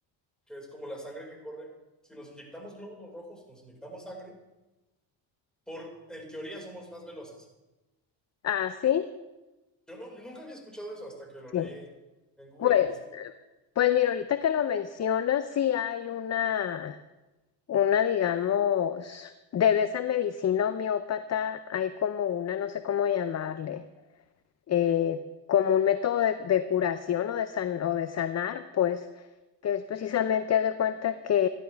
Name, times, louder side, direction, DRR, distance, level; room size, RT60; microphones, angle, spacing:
voice 1, 0.5-1.7 2.1-4.4 5.7-7.5 9.9-11.9 12.4-12.8, equal, ahead, -1 dB, 5.1 m, -43 dB
voice 2, 8.4-9.1 11.5-11.7 12.6-13.3 13.8-17.0 17.7-23.8 24.7-25.2 25.5-29.0 29.6-31.5, left 9 dB, 35° left, 11 dB, 0.6 m, -27 dB
15.5 x 11.5 x 3.5 m, 1.1 s
supercardioid pair, 80°, 48 cm